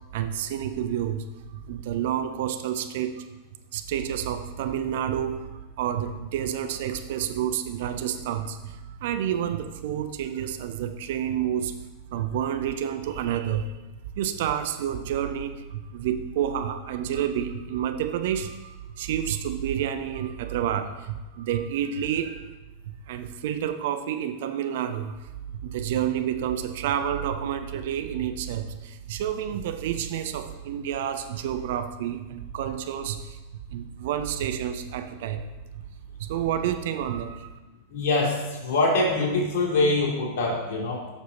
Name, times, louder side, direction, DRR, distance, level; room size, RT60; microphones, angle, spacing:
voice 1, 0.1-1.2 1.5-3.2 3.7-11.8 12.1-13.7 14.2-22.5 23.1-25.1 25.6-33.4 33.7-35.5 36.2-37.6, right 9 dB, 55° right, 8 dB, 0.5 m, -29 dB
voice 2, 37.9-41.1, left 2 dB, 50° left, -2 dB, 2.3 m, -24 dB
7.0 x 6.2 x 4.0 m, 1.1 s
figure-of-eight pair, 90°, 0 cm